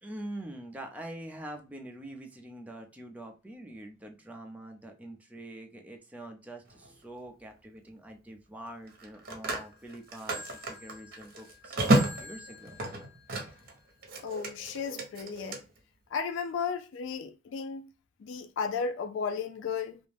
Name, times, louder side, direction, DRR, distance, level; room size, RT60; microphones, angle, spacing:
voice 1, 0.0-12.8, right 1 dB, 10° right, 0.4 m, -45 dB
Telephone, 6.7-6.9 8.9-13.7 14.0-15.6, right 1 dB, 55° right, 0.7 m, -31 dB
voice 2, 14.2-15.6 16.1-17.9 18.2-20.0, left 6 dB, 80° left, 0.3 m, -34 dB
2.4 x 2.1 x 3.2 m
head